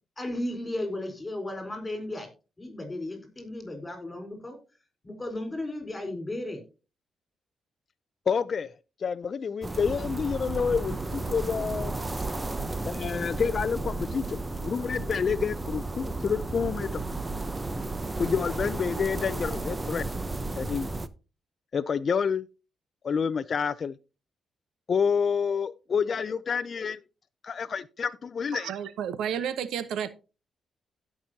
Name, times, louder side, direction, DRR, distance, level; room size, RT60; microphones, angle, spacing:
voice 1, 0.2-2.3 2.6-4.6 5.0-6.6, left 1 dB, 20° left, 4.4 m, -35 dB
voice 2, 8.3-8.7 9.0-11.9 12.8-17.0 18.2-20.1 20.5-20.9 21.7-22.4 23.0-23.9 24.9-27.0 27.4-28.7, left 6 dB, 45° left, 0.5 m, -28 dB
sound 1, 9.6-21.1, right 2 dB, 20° right, 0.8 m, -33 dB
voice 3, 28.5-30.1, right 8 dB, 90° right, 0.8 m, -31 dB
16.5 x 6.0 x 2.8 m
cardioid pair, 100°, 0 cm